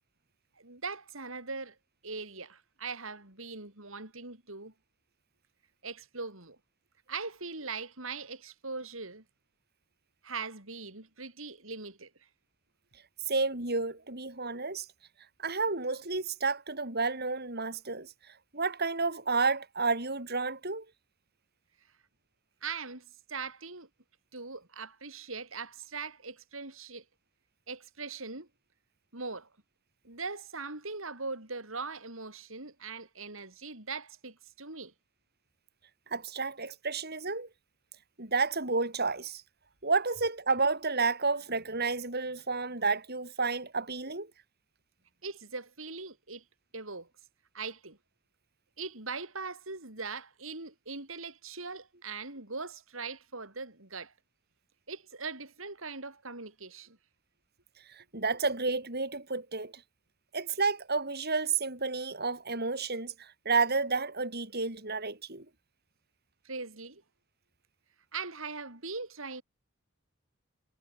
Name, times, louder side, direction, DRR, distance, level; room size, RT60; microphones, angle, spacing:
voice 1, 0.6-1.8 2.0-4.7 5.8-6.6 7.1-9.2 10.2-12.1 22.6-23.9 24.3-27.0 27.7-28.5 29.1-29.5 30.0-34.9 45.2-46.4 46.7-47.1 47.5-48.0 48.8-54.1 54.9-57.0 66.4-67.0 68.1-69.4, right 4 dB, 70° right, 5.8 m, -40 dB
voice 2, 13.3-14.9 15.4-20.9 36.1-37.5 38.2-39.4 39.8-44.3 57.9-59.8 60.3-65.5, right 4 dB, 50° right, 7.6 m, -31 dB
head